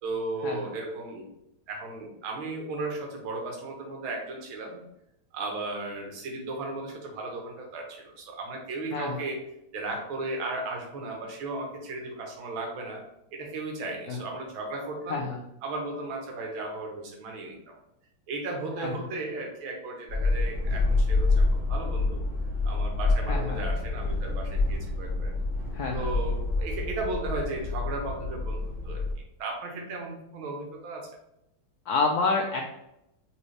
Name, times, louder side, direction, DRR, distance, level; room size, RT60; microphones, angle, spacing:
voice 1, 0.0-1.3 1.7-4.8 5.3-9.4 9.7-13.0 13.3-15.3 15.6-17.8 18.3-22.2 22.6-25.3 25.9-29.0 29.4-31.1, right 2 dB, 85° right, 1 dB, 1.8 m, -35 dB
voice 2, 15.1-15.4 18.8-18.9 23.3-23.6 25.7-26.1 31.9-32.6, left 4 dB, 80° left, 1 dB, 0.8 m, -28 dB
sound 1, 20.1-29.1, left 2 dB, 30° right, 1.3 m, -27 dB
4.1 x 3.5 x 3.2 m, 0.84 s
omnidirectional pair, 2.2 m